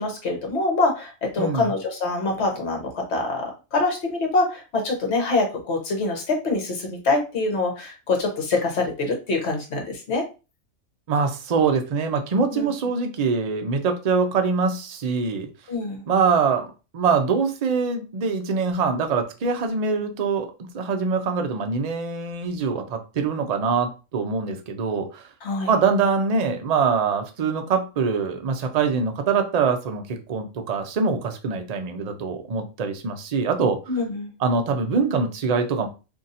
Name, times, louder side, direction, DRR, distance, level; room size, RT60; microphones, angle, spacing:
voice 1, 0.0-10.2 12.5-12.7 15.7-16.0 25.4-25.7 33.9-34.3, left 3 dB, 55° left, 2 dB, 1.2 m, -25 dB
voice 2, 1.4-1.7 11.1-15.5 16.1-16.7 16.9-25.3 25.7-33.8 34.4-35.9, right 5 dB, 70° right, 5 dB, 0.3 m, -24 dB
2.7 x 2.6 x 4.0 m, 0.31 s
omnidirectional pair, 1.4 m